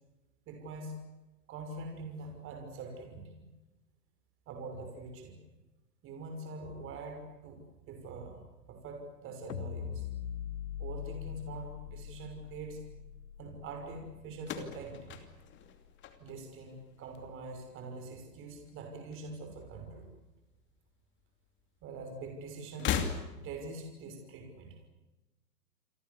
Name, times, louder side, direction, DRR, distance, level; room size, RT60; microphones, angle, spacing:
voice 1, 0.5-1.0 1.5-3.4 4.5-5.3 6.0-8.4 8.7-10.1 10.8-12.8 13.4-15.2 16.2-20.1 21.8-23.0 23.4-24.7, right 3 dB, 25° right, 4 dB, 5.9 m, -44 dB
sound 1, 9.5-15.8, left 10 dB, 70° left, 1.1 m, -43 dB
sound 2, 14.4-16.7 17.0-17.6 18.7-19.7 20.0-20.1 21.2-21.3 22.7-23.7, left 8 dB, 20° left, 2.7 m, -37 dB
29.0 x 23.5 x 7.2 m, 1.1 s
hypercardioid pair, 135°, 50 cm